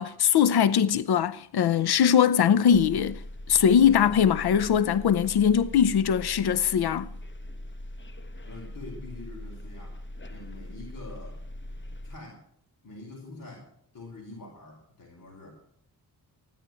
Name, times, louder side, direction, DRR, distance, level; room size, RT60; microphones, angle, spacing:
voice 1, 0.0-3.2 3.5-7.1, left 8 dB, 80° left, 0.6 m, -21 dB
sound 1, 2.7-12.2, left 1 dB, 30° left, 1.2 m, -41 dB
voice 2, 8.4-11.4 12.0-12.4 12.8-15.5, left 2 dB, 55° left, 4.9 m, -45 dB
14.5 x 10.5 x 7.6 m
cardioid pair, 85°, 38 cm